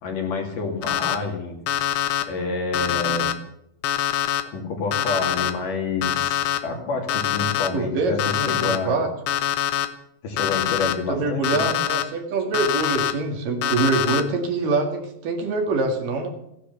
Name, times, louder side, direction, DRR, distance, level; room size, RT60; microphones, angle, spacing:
voice 1, 0.0-1.6 2.3-3.4 4.5-9.0 10.2-11.8, left 3 dB, 60° left, 2 dB, 4.0 m, -28 dB
Alarm, 0.8-1.1 1.7-2.2 2.7-3.3 3.8-4.4 4.9-5.5 6.0-6.6 7.1-7.7 8.2-8.8 9.3-9.9 10.4-10.9 11.4-12.0 12.5-13.1 13.6-14.2, left 11 dB, 80° left, 1.4 m, -24 dB
voice 2, 7.7-9.1 11.1-16.3, right 3 dB, 65° right, 4 dB, 3.6 m, -25 dB
16.5 x 10.0 x 6.9 m, 0.78 s
omnidirectional pair, 4.3 m